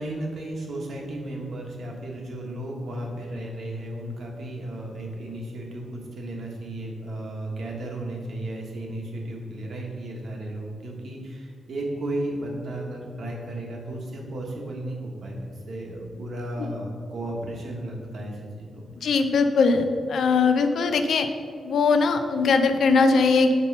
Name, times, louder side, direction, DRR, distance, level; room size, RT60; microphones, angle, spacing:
voice 1, 0.0-18.9, right 1 dB, 60° right, 0 dB, 1.2 m, -34 dB
voice 2, 19.0-21.3 21.6-23.5, left 4 dB, 70° left, 7 dB, 0.5 m, -20 dB
5.4 x 4.4 x 5.4 m, 2.2 s
wide cardioid pair, 150°, 0 cm